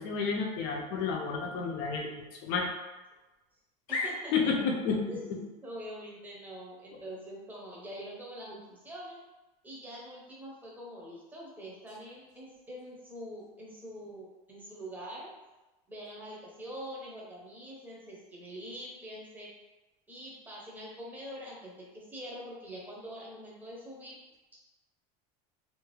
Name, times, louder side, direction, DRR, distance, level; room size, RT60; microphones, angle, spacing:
voice 1, 0.0-2.7 3.9-5.0, left 5 dB, 60° left, 1 dB, 0.6 m, -31 dB
voice 2, 3.9-4.3 5.1-9.2 9.6-15.3 15.9-19.5 20.1-24.2, equal, 10° right, -5 dB, 0.8 m, -44 dB
2.6 x 2.3 x 3.2 m, 1.1 s
supercardioid pair, 135°, 19 cm